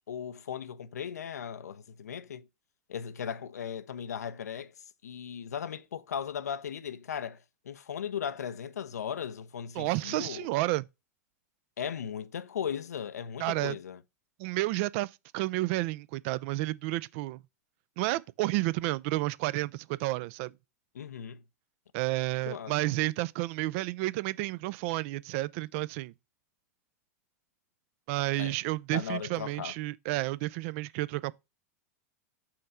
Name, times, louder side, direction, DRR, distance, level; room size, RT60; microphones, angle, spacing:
voice 1, 0.1-2.5 2.9-4.7 5.0-10.5 11.8-14.0 20.9-21.4 22.5-22.9 28.4-28.5 28.9-29.7, left 8 dB, 85° left, 0.5 m, -37 dB
voice 2, 9.8-10.9 13.4-13.8 14.4-17.4 18.0-20.5 21.9-26.1 28.1-31.3, right 19 dB, 55° right, 0.3 m, -31 dB
5.6 x 3.2 x 5.3 m
hypercardioid pair, 105°, 9 cm